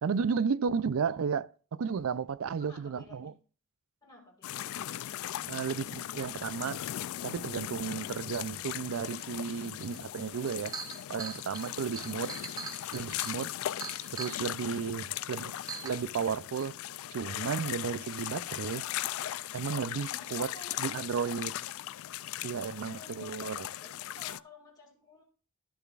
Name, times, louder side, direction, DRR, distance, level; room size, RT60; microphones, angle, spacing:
voice 1, 0.0-3.3 5.5-6.8 7.2-10.7 11.1-12.3 12.9-13.5 14.1-15.5 15.8-16.8 17.1-18.8 19.5-20.5 20.8-21.5 22.4-23.7, right 6 dB, 70° right, 0.4 m, -33 dB
voice 2, 2.6-3.3 4.0-5.0 20.1-21.1 22.5-23.5 23.8-25.2, left 3 dB, 20° left, 1.9 m, -54 dB
sound 1, 4.4-24.4, left 13 dB, 70° left, 0.3 m, -38 dB
Chink clink, 10.0-10.1 10.4-14.4 15.2-15.3 15.7-15.9, right 4 dB, 15° right, 0.8 m, -41 dB
12.0 x 6.6 x 2.4 m
head